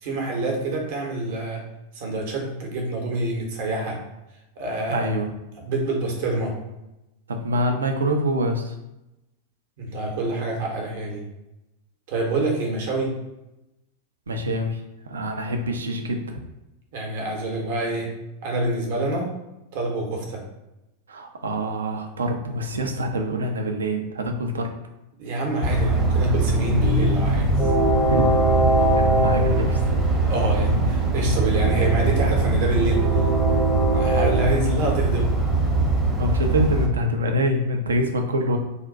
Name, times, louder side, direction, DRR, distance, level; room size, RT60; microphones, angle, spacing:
voice 1, 0.0-1.6 1.9-4.0 4.6-5.1 5.5-6.5 9.8-11.2 12.1-13.1 16.9-18.1 18.4-19.2 19.7-20.4 25.2-27.7 30.2-33.2 33.9-35.3, right 2 dB, 50° right, 0 dB, 0.8 m, -26 dB
voice 2, 4.9-5.3 7.3-8.7 14.3-16.4 21.1-24.7 28.1-28.3 29.1-29.8 36.2-38.6, equal, 70° right, 4 dB, 0.4 m, -25 dB
Train, 25.6-36.9, right 2 dB, 15° right, 0.7 m, -21 dB
2.5 x 2.1 x 3.7 m, 0.93 s
figure-of-eight pair, 90°, 0 cm